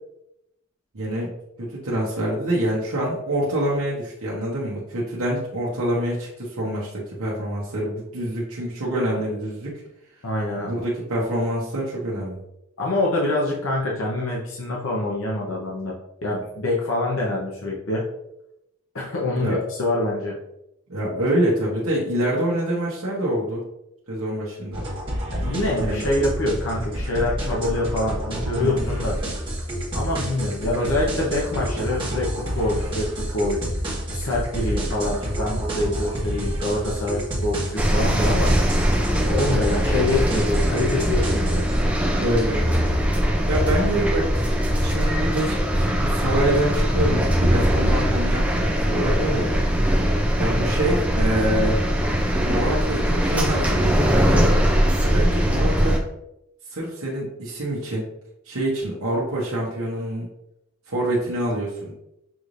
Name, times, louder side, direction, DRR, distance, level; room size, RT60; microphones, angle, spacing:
voice 1, 0.9-1.3 1.6-9.8 10.7-12.4 19.4-19.6 20.9-23.6 24.1-24.8 25.8-26.0 28.6-28.8 42.2-42.6 43.5-49.5 50.4-51.8 52.4-54.4 55.0-56.0 56.7-58.0 58.4-60.3 60.9-61.9, right 1 dB, 80° right, -6 dB, 1.0 m, -26 dB
voice 2, 10.2-10.7 12.8-15.9 16.2-18.1 18.9-20.3 25.3-29.1 29.9-33.6 34.1-38.6 39.3-41.6, left 2 dB, 70° left, -3 dB, 0.8 m, -25 dB
sound 1, 24.7-41.8, equal, 25° right, 1.4 m, -28 dB
sound 2, 37.8-56.0, equal, 5° right, 0.5 m, -21 dB
6.2 x 3.2 x 2.6 m, 0.84 s
head